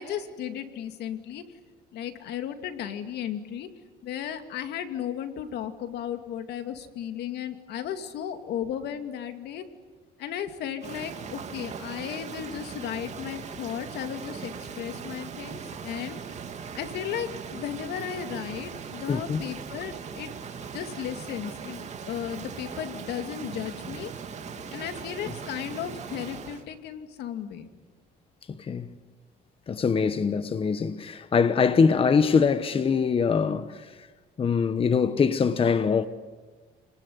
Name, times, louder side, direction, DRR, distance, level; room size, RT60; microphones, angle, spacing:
voice 1, 0.0-1.5 1.9-3.7 4.0-9.7 10.2-16.2 16.8-20.3 20.7-24.1 24.7-27.7, left 9 dB, 75° left, 2.5 m, -35 dB
Rain, 10.8-26.7, right 6 dB, 40° right, 2.7 m, -39 dB
voice 2, 19.1-19.4 25.3-25.4 28.5-28.9 29.7-34.1 34.4-36.1, left 5 dB, 35° left, 1.2 m, -23 dB
29.5 x 19.5 x 9.7 m
cardioid pair, 110°, 17 cm